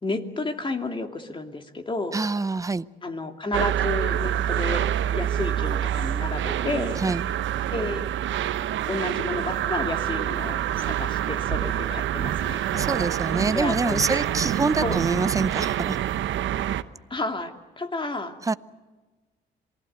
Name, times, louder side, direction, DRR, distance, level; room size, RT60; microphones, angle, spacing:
voice 1, 0.0-2.2 3.0-7.0 7.7-8.1 8.9-12.6 13.5-14.0 14.8-15.0 17.1-18.4, left 2 dB, 25° left, 5 dB, 2.6 m, -31 dB
voice 2, 2.1-2.9 7.0-7.3 12.7-16.0 18.4-18.5, right 3 dB, 15° right, 16 dB, 0.7 m, -26 dB
sound 1, 3.5-16.8, right 11 dB, 75° right, 0.9 m, -26 dB
27.0 x 20.0 x 8.0 m, 1.3 s
cardioid pair, 90°, 20 cm